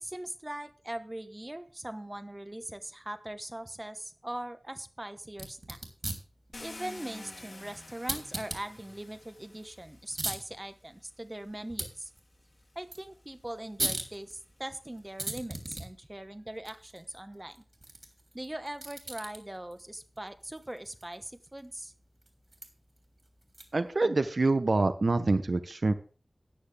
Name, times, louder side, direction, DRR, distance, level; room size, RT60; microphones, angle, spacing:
voice 1, 0.0-5.8 6.6-12.1 12.7-17.6 18.3-21.9, right 1 dB, 20° right, 10 dB, 1.1 m, -41 dB
sound 1, 5.3-24.0, right 2 dB, 45° right, 3.3 m, -42 dB
Car, 6.5-10.6 11.6-11.7 12.2-15.5, left 2 dB, 55° left, 1.9 m, -51 dB
voice 2, 23.7-25.9, right 3 dB, 65° right, 10 dB, 0.9 m, -26 dB
13.5 x 9.6 x 3.5 m, 0.38 s
wide cardioid pair, 75°, 0 cm